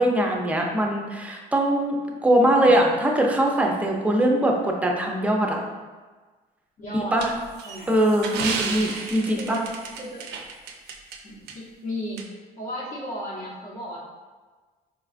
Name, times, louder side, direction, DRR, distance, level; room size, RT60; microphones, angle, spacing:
voice 1, 0.0-5.6 7.1-7.3 7.9-8.3 8.7-9.6, right 1 dB, 10° right, 0 dB, 0.4 m, -21 dB
voice 2, 2.6-2.9 6.8-7.2 7.6-7.9 8.3-8.8 9.3-9.6 10.0-10.3 11.2-12.2 12.6-14.0, equal, 50° left, -6 dB, 0.8 m, -34 dB
sound 1, 7.2-11.2 11.5-11.6 12.2-12.3, right 5 dB, 75° right, 0.4 m, -32 dB
4.2 x 2.3 x 2.4 m, 1.4 s
cardioid pair, 110°, 17 cm